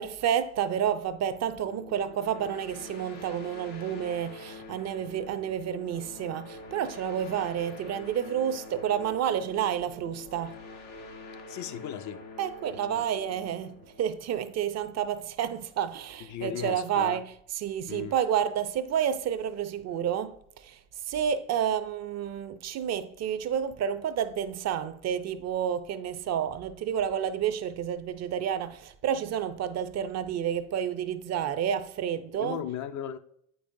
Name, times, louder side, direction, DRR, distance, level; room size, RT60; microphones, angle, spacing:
voice 1, 0.0-10.6 12.4-20.8 21.1-32.6, right 9 dB, 45° right, 0.5 m, -30 dB
sound 1, 1.6-15.0, left 3 dB, 90° left, 1.4 m, -46 dB
voice 2, 11.5-12.2 13.0-13.1 16.3-17.2 17.9-18.1 32.3-33.2, left 10 dB, 50° left, 0.5 m, -36 dB
8.1 x 5.4 x 2.6 m
supercardioid pair, 80°, 37 cm